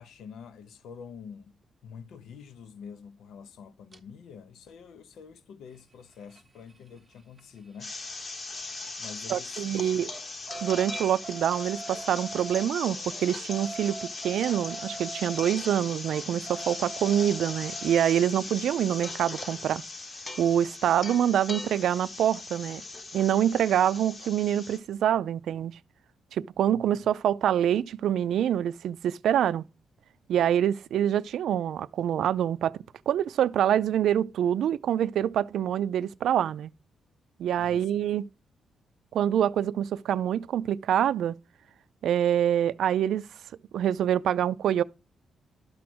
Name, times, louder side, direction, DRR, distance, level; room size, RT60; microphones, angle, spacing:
voice 1, 0.0-1.5 1.8-8.0 9.0-10.1 26.7-26.8 37.6-37.9, left 6 dB, 80° left, 0.8 m, -47 dB
sound 1, 3.9-4.0 5.7-9.2 9.5-18.2 19.9-20.0 20.2-20.3 20.6-20.7, right 3 dB, 15° right, 0.9 m, -44 dB
sound 2, 7.8-24.8, left 3 dB, 30° left, 0.9 m, -39 dB
voice 2, 9.3-10.1 10.6-14.0 14.2-19.8 20.4-22.8 23.1-25.8 26.3-29.6 30.3-32.8 33.1-36.7 37.4-38.3 39.1-41.4 42.0-43.2 43.7-44.8, right 10 dB, 75° right, 0.4 m, -26 dB
12.0 x 4.8 x 6.1 m
wide cardioid pair, 155°, 0 cm